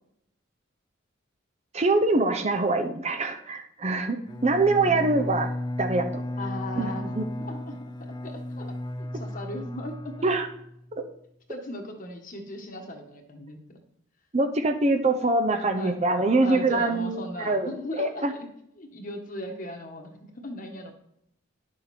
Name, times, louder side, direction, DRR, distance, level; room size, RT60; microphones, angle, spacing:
voice 1, 1.7-4.2 4.4-5.5 5.8-6.2 6.8-7.2 10.2-10.5 11.0-11.1 14.3-17.7 18.0-18.3, right 2 dB, 35° right, 6 dB, 0.7 m, -24 dB
Bowed string instrument, 4.3-10.9, left 1 dB, 20° left, 0.5 m, -35 dB
voice 2, 4.8-5.2 6.4-7.8 8.2-8.7 9.0-10.3 11.5-13.6 15.7-16.0 16.4-18.5 18.8-20.9, left 1 dB, 40° left, 3 dB, 1.4 m, -37 dB
11.0 x 6.5 x 4.3 m, 0.74 s
head